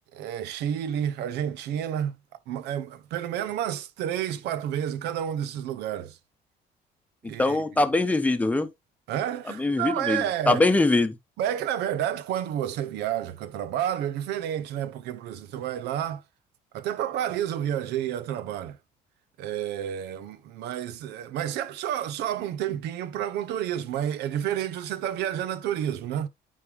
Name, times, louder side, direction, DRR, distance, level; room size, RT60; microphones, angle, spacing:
voice 1, 0.1-2.2 2.5-6.2 7.2-7.7 9.1-10.6 11.4-16.2 16.7-18.8 19.4-26.3, right 10 dB, 80° right, 0.8 m, -30 dB
voice 2, 7.4-8.7 9.5-11.2, left 2 dB, 10° left, 0.8 m, -23 dB
9.6 x 3.6 x 3.4 m
cardioid pair, 110°, 17 cm